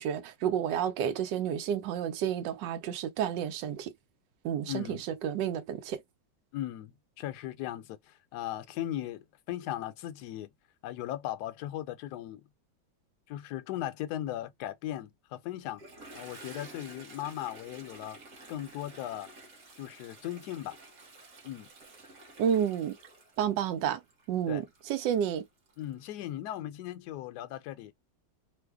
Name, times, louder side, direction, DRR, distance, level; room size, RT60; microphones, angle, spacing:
voice 1, 0.0-3.9 4.4-6.0 22.4-23.0 23.4-24.0 24.3-25.4, right 9 dB, 75° right, 1.3 m, -30 dB
voice 2, 4.7-5.0 6.5-10.5 10.8-12.4 13.3-15.8 16.1-18.2 18.5-19.3 19.8-20.8 21.4-21.7 24.5-24.6 25.8-27.9, left 13 dB, 70° left, 1.0 m, -38 dB
Toilet flush, 15.6-26.2, right 2 dB, 55° right, 1.3 m, -52 dB
3.2 x 2.0 x 3.4 m
omnidirectional pair, 2.0 m